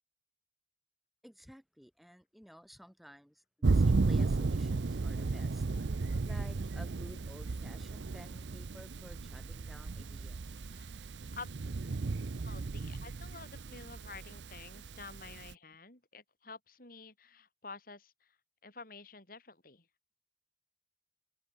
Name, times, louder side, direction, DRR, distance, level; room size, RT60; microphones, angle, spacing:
voice 1, 1.2-5.6 6.2-10.6, equal, ahead, 1.6 m, -54 dB
Thunder, 3.6-15.5, right 3 dB, 85° right, 0.6 m, -34 dB
voice 2, 10.6-10.9 11.3-11.6 12.3-18.4 18.6-19.9, left 4 dB, 55° left, 5.5 m, -50 dB
head